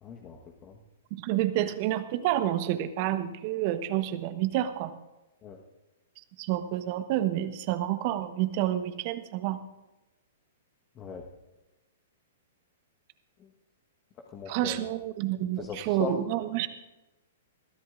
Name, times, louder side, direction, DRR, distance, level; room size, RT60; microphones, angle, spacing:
voice 1, 0.0-0.8 5.4-5.6 10.9-11.3 13.4-13.5 14.3-14.8 15.6-16.2, left 6 dB, 30° left, 1 dB, 1.3 m, -39 dB
voice 2, 1.2-4.9 6.4-9.6 14.5-16.7, right 13 dB, 45° right, 11 dB, 1.1 m, -29 dB
21.5 x 14.5 x 2.5 m, 1.0 s
hypercardioid pair, 115°, 0 cm